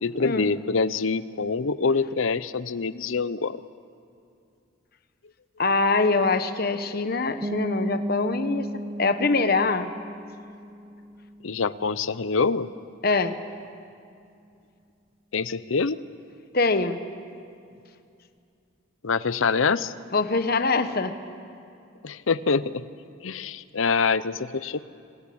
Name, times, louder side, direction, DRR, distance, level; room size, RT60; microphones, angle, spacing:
voice 1, 0.0-3.6 11.4-12.7 15.3-16.0 19.0-19.9 22.0-22.9 23.2-24.8, left 4 dB, 80° left, 16 dB, 0.7 m, -25 dB
voice 2, 5.6-8.7 9.0-9.9 13.0-13.3 16.5-17.0 20.1-21.1, left 3 dB, 50° left, 9 dB, 1.1 m, -23 dB
sound 1, 7.4-13.0, right 1 dB, 30° right, 1.4 m, -36 dB
26.5 x 19.5 x 8.6 m, 2.5 s
head